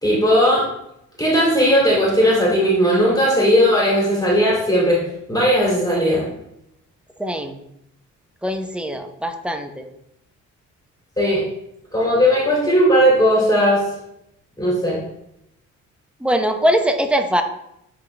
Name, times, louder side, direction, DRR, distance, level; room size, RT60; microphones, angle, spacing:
voice 1, 0.0-0.7 1.2-5.0 5.3-6.2 11.2-11.4 11.9-13.8 14.6-15.0, equal, 10° left, -5 dB, 2.6 m, -17 dB
voice 2, 7.2-7.6 8.4-9.9 16.2-17.4, equal, 5° right, 6 dB, 0.8 m, -21 dB
9.6 x 3.8 x 3.3 m, 0.79 s
cardioid pair, 90°, 30 cm